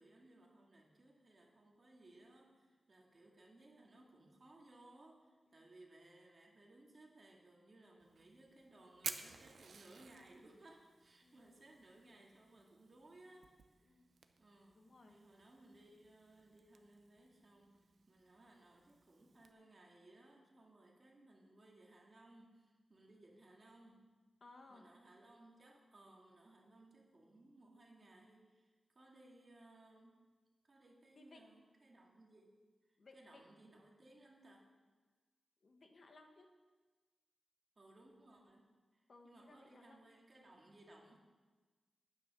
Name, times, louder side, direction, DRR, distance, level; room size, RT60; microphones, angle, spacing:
voice 1, 0.0-14.0 14.4-14.8 15.1-24.1 24.7-30.2 30.7-32.5 33.1-34.7 37.8-41.2, right 1 dB, 40° right, -1 dB, 2.1 m, -63 dB
Fire, 8.0-19.5, right 5 dB, 75° right, 0.7 m, -54 dB
voice 2, 14.7-15.2 24.4-25.0 31.1-31.4 33.0-33.4 35.6-36.5 39.1-40.0, left 2 dB, 55° left, 4 dB, 1.2 m, -62 dB
10.0 x 9.3 x 6.0 m, 1.3 s
wide cardioid pair, 130°, 0 cm